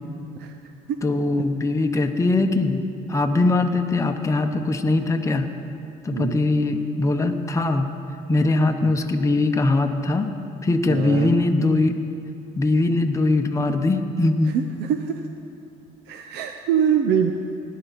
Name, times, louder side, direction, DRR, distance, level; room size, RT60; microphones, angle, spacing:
voice 1, 1.0-5.5 6.0-7.9 8.3-10.3 10.6-11.9 12.6-14.6, left 2 dB, 15° left, 4 dB, 0.8 m, -21 dB
voice 2, 10.9-11.3 14.5-15.2 16.1-17.3, right 8 dB, 80° right, 6 dB, 0.7 m, -24 dB
18.0 x 10.5 x 4.1 m, 2.7 s
cardioid pair, 110°, 17 cm